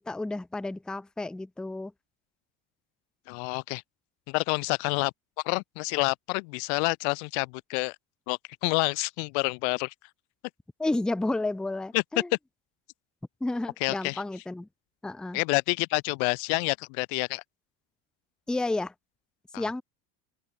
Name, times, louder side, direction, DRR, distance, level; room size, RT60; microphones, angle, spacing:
voice 1, 0.1-1.9 10.8-12.3 13.4-14.7 15.0-15.4 18.5-18.9 19.6-19.8, left 2 dB, ahead, 0.6 m, -31 dB
voice 2, 3.3-3.8 4.3-5.1 5.4-8.0 8.3-9.9 11.9-12.0 13.8-14.2 15.3-17.4 19.5-19.7, left 39 dB, 85° left, 0.8 m, -28 dB
open air
cardioid pair, 175°, 34 cm